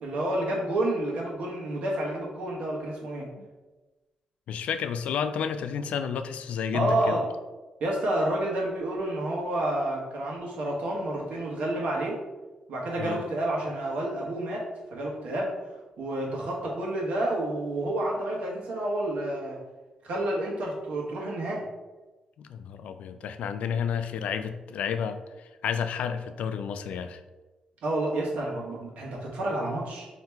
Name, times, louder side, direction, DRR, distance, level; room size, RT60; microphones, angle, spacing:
voice 1, 0.0-3.3 6.7-7.2 7.8-12.2 12.7-15.6 16.0-19.6 20.0-21.6 27.8-30.1, right 1 dB, 75° right, -2 dB, 1.1 m, -29 dB
voice 2, 4.5-7.2 13.0-13.2 22.4-27.2, left 7 dB, 80° left, 10 dB, 0.3 m, -31 dB
3.4 x 2.9 x 4.4 m, 1.2 s
cardioid pair, 125°, 2 cm